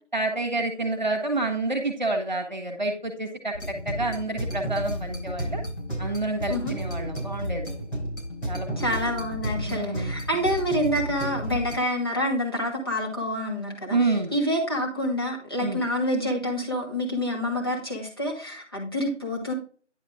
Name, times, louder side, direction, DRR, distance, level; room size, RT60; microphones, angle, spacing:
voice 1, 0.1-5.6 6.0-7.8 8.5-9.0 9.6-10.1 13.9-14.3 15.6-15.8, right 2 dB, 40° right, 3 dB, 1.6 m, -28 dB
sound 1, 3.5-11.8, equal, 80° left, 4.5 m, -32 dB
voice 2, 8.8-19.5, equal, 20° left, -2 dB, 1.6 m, -27 dB
10.5 x 4.9 x 3.6 m, 0.40 s
figure-of-eight pair, 170°, 36 cm